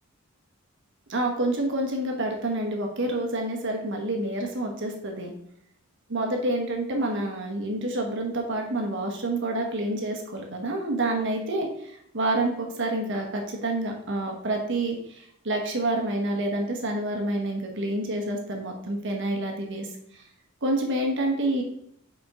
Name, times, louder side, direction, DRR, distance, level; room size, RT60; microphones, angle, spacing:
voice 1, 1.1-5.3 6.1-19.9 20.6-21.6, right 1 dB, 60° right, 2 dB, 1.3 m, -28 dB
5.1 x 4.5 x 4.8 m, 0.72 s
head